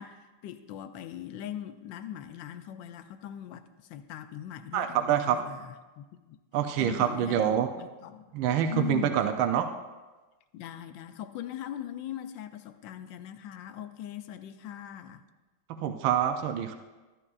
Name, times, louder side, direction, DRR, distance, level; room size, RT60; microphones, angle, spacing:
voice 1, 0.0-6.4 6.8-7.4 7.7-9.2 10.5-15.2, left 11 dB, 75° left, 9 dB, 1.2 m, -40 dB
voice 2, 4.7-5.4 6.5-7.7 8.3-9.7 15.8-16.7, right 9 dB, 80° right, 6 dB, 1.4 m, -26 dB
12.0 x 12.0 x 2.4 m, 1.2 s
omnidirectional pair, 2.2 m